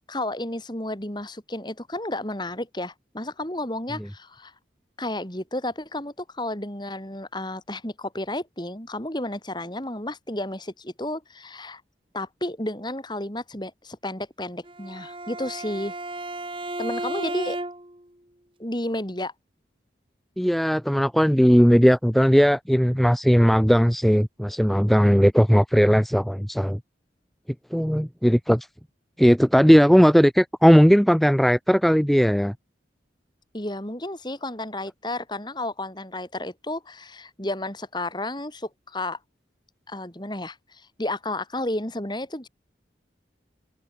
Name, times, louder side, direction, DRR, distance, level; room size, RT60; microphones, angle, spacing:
voice 1, 0.1-4.5 5.0-11.8 12.1-15.9 16.8-17.6 18.6-19.3 33.5-39.2 39.9-42.5, left 1 dB, 25° left, 3.9 m, -32 dB
Bowed string instrument, 14.6-18.0, right 2 dB, 30° right, 7.9 m, -33 dB
voice 2, 20.4-26.8 27.7-28.7 29.2-32.5, equal, ahead, 0.9 m, -18 dB
open air
head